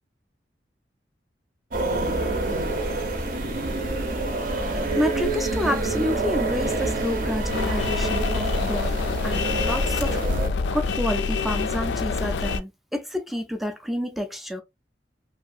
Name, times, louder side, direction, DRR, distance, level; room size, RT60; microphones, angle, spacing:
sound 1, 1.7-10.5, right 2 dB, 50° right, 0.6 m, -27 dB
voice 1, 5.0-8.9 9.2-10.2 10.7-14.6, left 1 dB, ahead, 0.4 m, -29 dB
sound 2, 7.5-12.6, left 4 dB, 80° left, 0.4 m, -26 dB
2.7 x 2.5 x 2.4 m
head